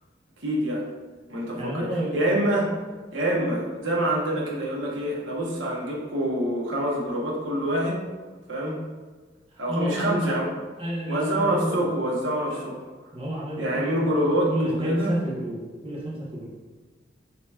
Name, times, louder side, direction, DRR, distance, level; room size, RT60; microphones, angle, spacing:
voice 1, 0.4-0.8 1.3-1.9 2.1-2.8 3.1-8.0 8.5-8.8 9.6-10.5 11.1-12.8 13.6-15.1, right 1 dB, 90° right, -3 dB, 1.0 m, -26 dB
voice 2, 1.5-2.2 9.5-10.3 10.8-11.8 12.5-12.7 13.1-16.5, equal, 30° right, -6 dB, 1.0 m, -30 dB
7.4 x 3.0 x 2.3 m, 1.4 s
head